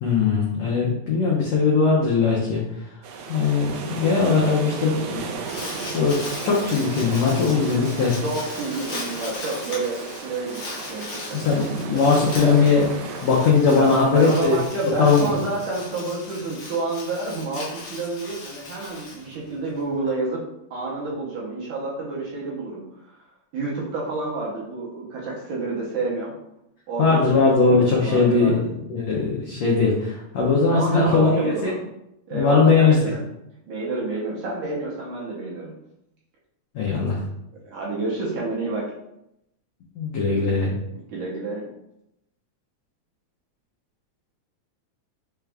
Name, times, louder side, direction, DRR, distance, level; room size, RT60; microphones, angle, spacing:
voice 1, 0.0-2.6 3.3-5.3 5.9-8.1 11.3-12.9 13.2-14.6 15.0-15.3 27.0-28.6 28.9-31.7 32.3-33.0 36.7-37.2 40.0-40.7, left 4 dB, 85° left, -5 dB, 1.5 m, -20 dB
sound 1, 3.0-14.7, right 5 dB, 85° right, 1.7 m, -35 dB
Crumpling crinkling, 5.2-19.8, left 2 dB, 65° left, 1.2 m, -38 dB
voice 2, 8.2-10.6 10.9-12.6 13.7-20.4 20.7-23.2 23.5-26.3 26.9-28.6 30.7-31.8 32.3-33.2 33.7-35.8 37.6-38.9 40.9-41.7, right 3 dB, 70° right, -5 dB, 2.0 m, -29 dB
6.0 x 2.3 x 3.3 m, 0.82 s
omnidirectional pair, 4.1 m